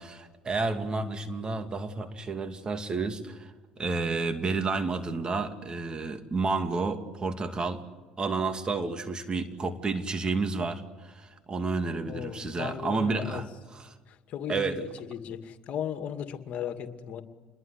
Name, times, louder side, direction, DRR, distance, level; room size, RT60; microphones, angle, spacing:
voice 1, 0.0-7.8 8.2-13.4 13.7-13.9 14.5-14.8, right 3 dB, 30° right, 7 dB, 2.5 m, -31 dB
voice 2, 12.0-13.4 14.1-17.2, left 9 dB, 55° left, 7 dB, 2.4 m, -36 dB
28.5 x 21.5 x 8.3 m, 1.3 s
hypercardioid pair, 65°, 3 cm